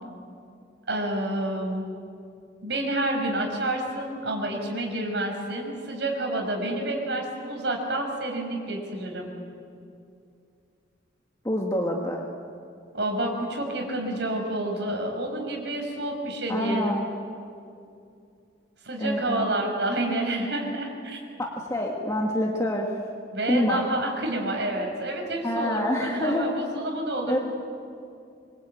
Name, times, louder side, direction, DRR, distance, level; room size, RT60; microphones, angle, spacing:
voice 1, 0.9-1.8 2.6-9.3 12.9-17.0 18.8-21.2 23.3-27.3, right 1 dB, 65° right, 2 dB, 6.1 m, -29 dB
voice 2, 11.4-12.2 16.5-17.1 19.0-19.5 21.4-22.9 23.5-23.8 25.4-26.5 27.3-27.4, equal, 15° left, -1 dB, 2.0 m, -26 dB
26.0 x 23.0 x 9.2 m, 2.5 s
head